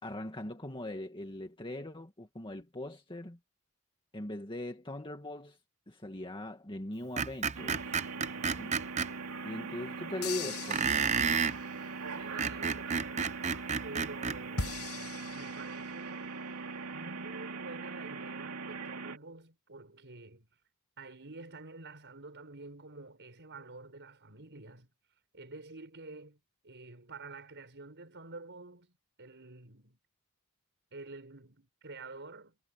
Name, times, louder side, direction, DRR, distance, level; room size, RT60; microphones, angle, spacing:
voice 1, 0.0-3.4 4.1-5.6 5.9-8.0 8.3-8.8 9.4-11.1, left 1 dB, 25° left, 2.0 m, -40 dB
Screech, 7.2-9.1 10.7-11.6 12.2-14.4, right 6 dB, 30° right, 0.6 m, -30 dB
sound 1, 7.5-19.2, right 4 dB, 75° right, 2.9 m, -41 dB
voice 2, 8.1-8.6 12.1-13.5 13.8-14.8 15.3-16.3 16.9-20.5 21.0-24.9 25.3-26.4 26.6-28.9 29.2-30.0 30.9-32.6, right 3 dB, 55° right, 5.6 m, -49 dB
sound 2, 10.2-11.7 14.6-16.2, left 4 dB, 90° left, 6.7 m, -40 dB
head